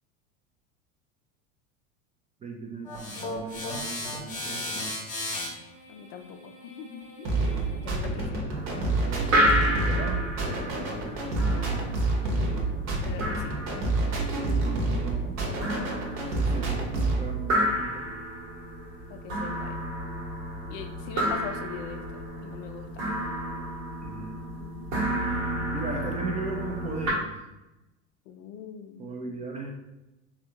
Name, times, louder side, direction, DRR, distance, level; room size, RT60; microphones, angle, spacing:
voice 1, 2.4-5.0 8.2-8.4 8.8-11.2 14.4-15.4 16.3-18.2 24.0-24.4 25.7-27.5 29.0-29.8, right 3 dB, 20° right, 0 dB, 0.4 m, -38 dB
sound 1, 2.8-8.0, left 1 dB, 20° left, 0.8 m, -36 dB
voice 2, 5.9-7.4 7.7-8.5 12.2-12.7 13.0-13.5 19.1-19.8 20.7-22.0 22.4-23.1 24.6-25.2 28.3-29.2, left 7 dB, 50° left, 5 dB, 0.5 m, -42 dB
sound 2, 7.2-17.3, right 2 dB, 40° right, 0.9 m, -28 dB
sound 3, 8.5-27.1, equal, 75° right, 1.1 m, -31 dB
3.3 x 2.4 x 2.8 m, 0.96 s
hypercardioid pair, 90°, 40 cm